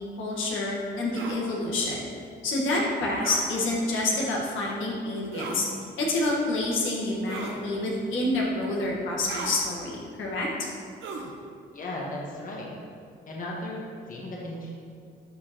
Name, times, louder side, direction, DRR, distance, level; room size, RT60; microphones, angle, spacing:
voice 1, 0.2-2.1 2.4-5.7 6.0-10.5, left 2 dB, 75° left, -3 dB, 1.5 m, -28 dB
sound 1, 1.1-1.4 3.2-3.5 5.3-5.6 7.3-7.6 9.3-9.6 11.0-11.3, right 4 dB, 80° right, 0.9 m, -36 dB
voice 2, 11.7-12.7 13.3-13.8 14.1-14.7, left 1 dB, 45° left, -3 dB, 1.3 m, -35 dB
11.0 x 4.9 x 3.0 m, 2.3 s
cardioid pair, 90°, 20 cm